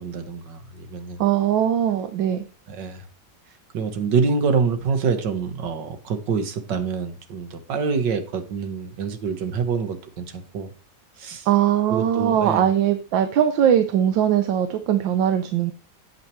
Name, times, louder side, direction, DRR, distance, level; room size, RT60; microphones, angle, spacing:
voice 1, 0.0-1.2 2.7-3.0 3.7-10.7 11.2-11.5 11.9-12.6, right 5 dB, 70° right, 9 dB, 1.9 m, -26 dB
voice 2, 1.2-2.4 11.5-15.7, right 10 dB, 85° right, 9 dB, 1.5 m, -20 dB
9.1 x 8.7 x 3.1 m, 0.37 s
omnidirectional pair, 2.0 m